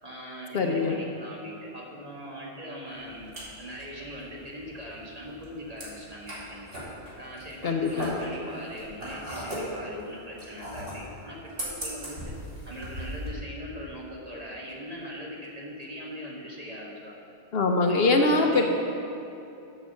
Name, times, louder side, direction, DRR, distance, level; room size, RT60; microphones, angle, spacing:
voice 1, 0.0-6.7 7.2-12.2 12.6-17.2 17.9-18.7, equal, 35° right, -4 dB, 1.7 m, -41 dB
voice 2, 0.5-1.0 7.6-8.2 17.5-18.7, left 3 dB, 65° left, 3 dB, 1.0 m, -23 dB
sound 1, 2.9-13.3, equal, 55° right, 2.5 m, -38 dB
8.9 x 6.2 x 7.0 m, 2.8 s
omnidirectional pair, 1.1 m